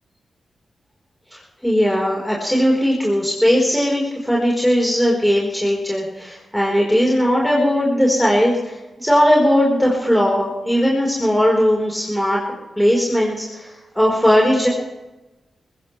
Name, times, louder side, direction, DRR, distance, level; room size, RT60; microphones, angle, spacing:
voice 1, 1.3-12.4 12.8-14.7, equal, 5° left, -3 dB, 4.7 m, -18 dB
22.5 x 15.0 x 3.4 m, 1.1 s
cardioid pair, 65°, 0 cm